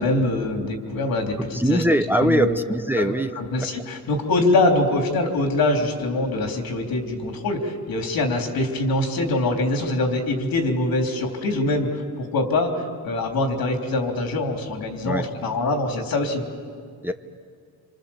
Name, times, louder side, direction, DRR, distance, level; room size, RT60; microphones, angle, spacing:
voice 1, 0.0-1.8 2.2-2.6 3.0-16.4, left 2 dB, 80° left, 3 dB, 3.8 m, -24 dB
voice 2, 1.5-3.3 3.6-3.7 15.0-15.3 17.0-17.1, right 1 dB, 5° right, 7 dB, 0.9 m, -22 dB
28.5 x 26.5 x 7.3 m, 2.2 s
cardioid pair, 125°, 35 cm